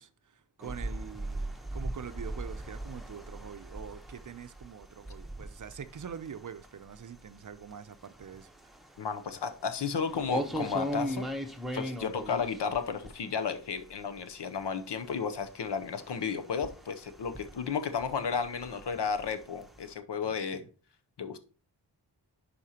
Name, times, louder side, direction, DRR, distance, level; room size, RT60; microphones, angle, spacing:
voice 1, 0.0-8.5 20.2-20.7, right 7 dB, 45° right, 0.6 m, -45 dB
sound 1, 0.6-14.2 14.6-19.9, equal, ahead, 0.9 m, -40 dB
voice 2, 9.0-11.3 11.7-20.6 21.2-21.4, left 6 dB, 75° left, 0.8 m, -33 dB
10.5 x 4.3 x 2.9 m
cardioid pair, 45°, 42 cm